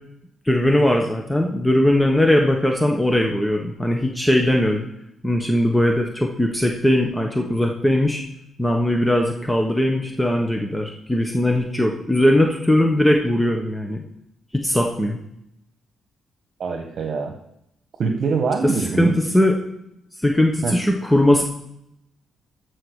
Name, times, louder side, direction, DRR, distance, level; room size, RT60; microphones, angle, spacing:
voice 1, 0.4-4.9 5.2-8.2 8.6-14.0 14.5-15.2 18.8-19.6 20.2-21.4, left 1 dB, 5° left, 1 dB, 1.3 m, -19 dB
voice 2, 16.6-17.3 18.0-19.2 20.6-20.8, right 4 dB, 55° right, 3 dB, 1.4 m, -23 dB
13.0 x 4.8 x 6.6 m, 0.79 s
cardioid pair, 105°, 0 cm